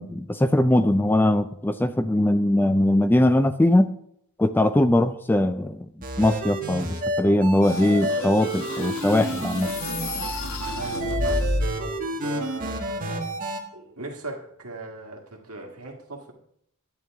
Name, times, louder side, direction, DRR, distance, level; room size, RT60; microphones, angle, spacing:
voice 1, 0.0-3.9 4.4-5.9 6.2-9.7, left 1 dB, 10° left, 0.3 m, -21 dB
sound 1, 6.0-13.6, right 1 dB, 40° right, 1.5 m, -30 dB
sound 2, 7.6-12.0, left 1 dB, 65° left, 1.2 m, -30 dB
voice 2, 10.7-13.3 13.7-16.3, right 3 dB, 75° right, 1.8 m, -39 dB
11.0 x 8.7 x 3.5 m
head